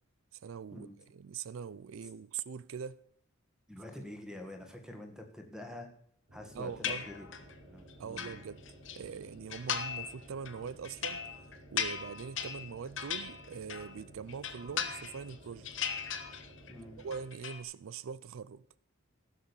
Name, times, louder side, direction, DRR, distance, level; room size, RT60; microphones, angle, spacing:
voice 1, 0.3-3.0 6.5-7.0 8.0-8.6 8.9-11.2 11.7-15.7 17.0-18.6, right 6 dB, 75° right, 0.4 m, -42 dB
voice 2, 3.7-5.9 6.3-7.3 7.7-8.4 16.7-17.0, left 1 dB, 5° right, 1.8 m, -46 dB
sound 1, 6.3-17.3, right 1 dB, 50° right, 5.3 m, -55 dB
sound 2, 6.8-7.5 7.9-9.0 9.5-10.1 10.5-14.0 14.3-15.3 15.6-16.7 17.0-17.6, left 7 dB, 60° left, 1.2 m, -38 dB
15.5 x 6.5 x 7.1 m
head